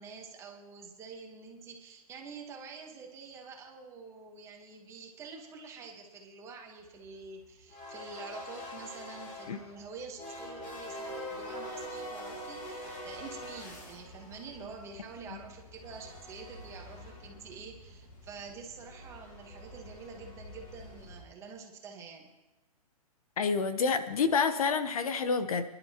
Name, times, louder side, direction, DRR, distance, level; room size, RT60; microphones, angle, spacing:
voice 1, 0.0-22.3, right 5 dB, 15° right, 1 dB, 1.4 m, -47 dB
sound 1, 6.9-21.2, left 1 dB, 25° left, 2.0 m, -45 dB
voice 2, 23.4-25.6, left 5 dB, 65° left, 10 dB, 1.1 m, -28 dB
25.0 x 11.0 x 3.0 m, 1.1 s
hypercardioid pair, 165°, 19 cm